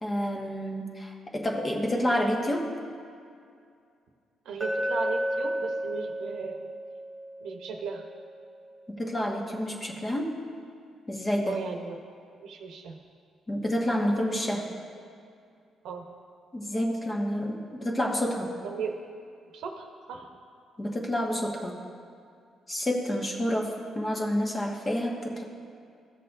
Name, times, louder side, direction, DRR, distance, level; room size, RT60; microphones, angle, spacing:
voice 1, 0.0-2.6 9.0-10.3 11.1-11.6 13.5-14.7 16.5-18.5 20.8-21.8 22.7-25.4, equal, 25° left, 0 dB, 1.3 m, -29 dB
voice 2, 4.4-6.7 7.4-8.0 11.5-12.0 12.4-13.0 15.8-16.1 18.6-18.9 19.5-20.3, right 5 dB, 80° right, 2 dB, 0.9 m, -36 dB
Glass, 4.6-8.7, equal, 10° right, 1.9 m, -33 dB
15.0 x 6.6 x 2.6 m, 2.3 s
cardioid pair, 90°, 0 cm